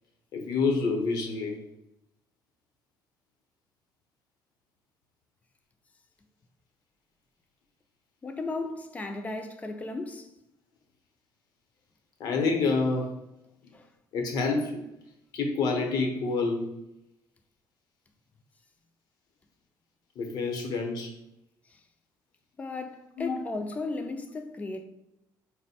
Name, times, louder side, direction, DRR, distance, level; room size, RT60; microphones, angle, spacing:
voice 1, 0.3-1.6 12.2-13.1 14.1-14.9 15.3-16.8 20.2-21.1 23.2-23.4, left 4 dB, 65° left, 0.8 m, -28 dB
voice 2, 8.2-10.3 13.7-13.9 21.7-21.8 22.6-24.8, left 3 dB, 20° left, 0.4 m, -35 dB
4.3 x 2.1 x 4.2 m
cardioid pair, 135°, 7 cm